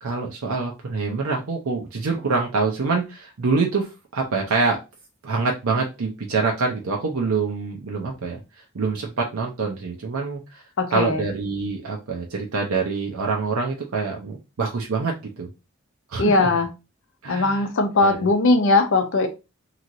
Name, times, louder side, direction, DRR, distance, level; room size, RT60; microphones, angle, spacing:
voice 1, 0.0-4.8 5.2-8.4 8.7-10.6 10.9-15.5 16.1-16.5 17.2-17.7 18.0-18.3, right 4 dB, 70° right, 0 dB, 0.6 m, -25 dB
voice 2, 10.8-11.2 16.2-16.7 17.3-19.3, left 3 dB, 60° left, 7 dB, 0.6 m, -19 dB
3.0 x 2.8 x 2.5 m, 0.27 s
head